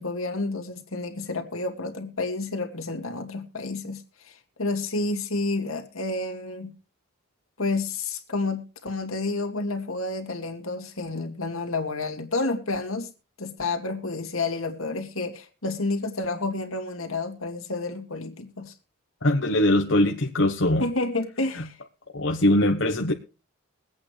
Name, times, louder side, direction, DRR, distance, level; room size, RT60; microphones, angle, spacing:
voice 1, 0.0-6.7 7.6-13.1 13.4-18.7 20.8-21.8, left 3 dB, 75° left, 2.4 m, -30 dB
voice 2, 19.2-20.9 21.5-21.6 22.1-23.1, left 1 dB, 60° left, 1.1 m, -22 dB
23.0 x 8.7 x 3.3 m
head